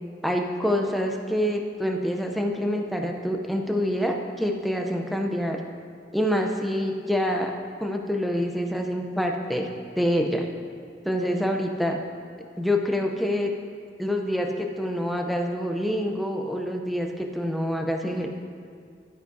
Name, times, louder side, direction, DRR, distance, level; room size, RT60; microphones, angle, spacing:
voice 1, 0.2-5.6 6.1-7.5 7.8-9.7 10.0-10.5 11.0-12.0 12.6-13.5 14.0-18.3, equal, ahead, 2 dB, 0.5 m, -26 dB
12.0 x 9.3 x 2.7 m, 2.2 s
head